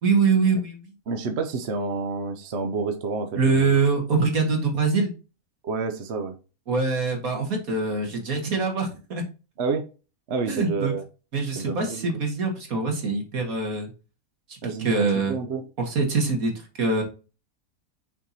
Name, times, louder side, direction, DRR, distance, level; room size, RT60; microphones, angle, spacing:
voice 1, 0.0-0.9 3.4-5.1 6.7-9.2 10.5-10.9 11.3-13.9 14.5-15.4 15.8-16.5 16.8-17.0, right 4 dB, 75° right, 2 dB, 2.3 m, -24 dB
voice 2, 1.1-3.8 5.6-6.3 9.6-9.8 10.3-11.0 11.6-12.1 14.6-15.6, right 4 dB, 55° right, 7 dB, 1.0 m, -29 dB
6.0 x 4.5 x 4.1 m, 0.32 s
omnidirectional pair, 1.5 m